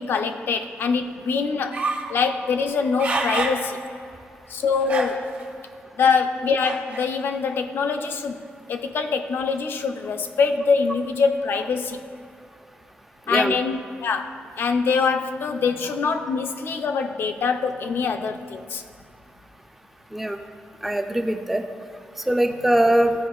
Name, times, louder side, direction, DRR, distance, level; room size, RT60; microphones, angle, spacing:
voice 1, 0.0-1.8 2.1-3.8 4.5-5.2 6.0-8.4 8.7-12.0 13.3-18.8, left 5 dB, 60° left, 7 dB, 0.5 m, -24 dB
sound 1, 1.7-2.1 2.7-3.6 4.1-4.2 4.8-5.4 6.6-7.1, right 3 dB, 45° right, 0.8 m, -27 dB
voice 2, 20.8-21.6 22.3-23.1, right 1 dB, 5° right, 5 dB, 0.4 m, -21 dB
13.5 x 4.8 x 2.3 m, 2.4 s
wide cardioid pair, 165°, 4 cm